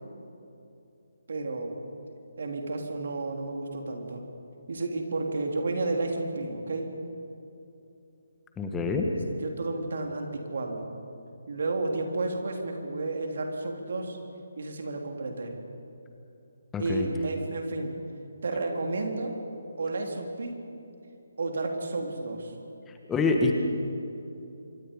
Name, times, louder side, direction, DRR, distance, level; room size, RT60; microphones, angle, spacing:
voice 1, 1.3-1.8 2.4-4.2 4.7-6.9 9.3-10.9 11.5-14.2 14.6-15.6 16.8-17.9 18.4-19.4 19.8-20.6 21.4-22.5, right 2 dB, 60° right, 3 dB, 3.5 m, -31 dB
voice 2, 8.6-9.1 16.7-17.1 23.1-23.5, left 4 dB, 10° left, 2 dB, 1.7 m, -25 dB
26.0 x 24.0 x 5.5 m, 2.8 s
figure-of-eight pair, 150°, 0 cm